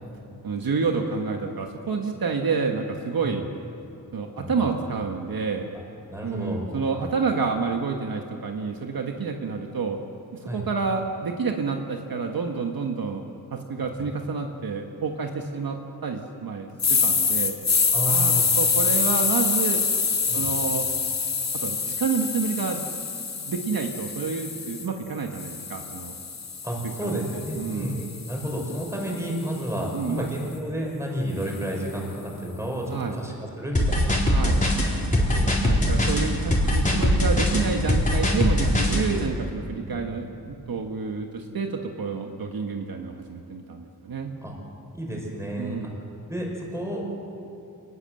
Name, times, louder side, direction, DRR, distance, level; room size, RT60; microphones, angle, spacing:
voice 1, 0.4-3.4 4.1-5.7 6.2-10.0 10.3-13.3 13.5-17.5 18.0-19.8 20.3-20.9 21.5-22.8 23.5-26.2 27.0-28.0 29.9-30.3 32.9-33.2 34.3-34.6 35.6-44.3 45.6-45.9, right 5 dB, 65° right, 3 dB, 1.6 m, -29 dB
voice 2, 4.4-4.7 6.1-6.7 7.0-7.1 10.4-10.6 13.8-14.1 17.9-18.5 20.3-20.5 26.6-34.2 35.1-35.9 39.7-40.0 44.4-44.5 44.9-45.9 46.3-47.0, equal, 5° right, -1 dB, 5.6 m, -31 dB
sound 1, 16.8-24.9 25.3-29.5, left 5 dB, 45° left, 1.8 m, -26 dB
sound 2, 33.7-39.0, equal, 20° left, 4.2 m, -21 dB
27.0 x 20.0 x 7.8 m, 2.8 s
wide cardioid pair, 160°, 38 cm